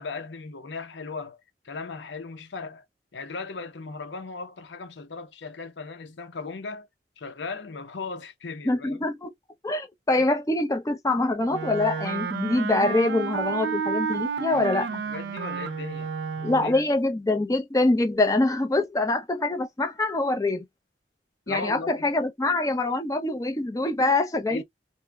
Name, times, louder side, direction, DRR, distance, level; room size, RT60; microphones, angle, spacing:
voice 1, 0.0-2.8 3.1-6.9 7.2-9.1 14.4-16.7 21.5-22.1 24.5-24.6, left 4 dB, 80° left, 0.7 m, -37 dB
voice 2, 8.7-9.3 9.6-15.0 16.4-20.6 21.5-24.6, left 2 dB, 20° left, 0.5 m, -24 dB
Wind instrument woodwind instrument, 11.5-16.8, right 5 dB, 75° right, 0.4 m, -31 dB
2.8 x 2.1 x 2.3 m
head